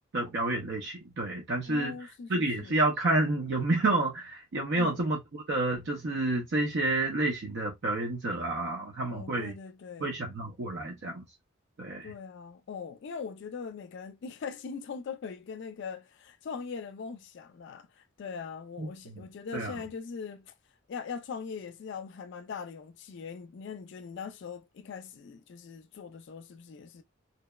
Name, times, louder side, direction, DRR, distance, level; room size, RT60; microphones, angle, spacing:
voice 1, 0.1-2.0 2.3-9.5 10.0-11.2 11.8-12.1 18.8-19.2 19.5-19.8, right 2 dB, 60° right, 0.5 m, -29 dB
voice 2, 1.6-2.8 4.8-5.0 9.1-10.2 12.0-20.5 20.9-27.0, left 5 dB, 60° left, 0.3 m, -41 dB
2.7 x 2.0 x 2.2 m
head